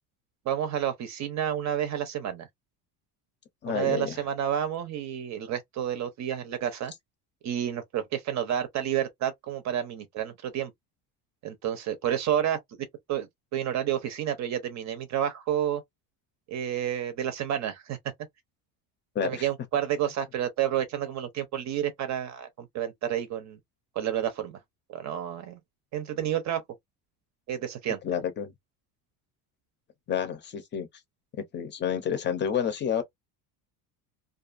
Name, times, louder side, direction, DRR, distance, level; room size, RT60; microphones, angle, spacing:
voice 1, 0.5-2.5 3.7-6.9 7.4-10.7 11.4-12.6 13.1-15.8 16.5-18.0 19.2-23.6 24.0-24.6 24.9-25.6 25.9-26.6 27.5-28.0, right 10 dB, 45° right, 0.6 m, -30 dB
voice 2, 3.6-4.2 19.1-19.5 28.0-28.5 30.1-30.9 31.5-33.0, left 8 dB, 25° left, 0.6 m, -29 dB
2.5 x 2.3 x 2.4 m
cardioid pair, 150°, 40 cm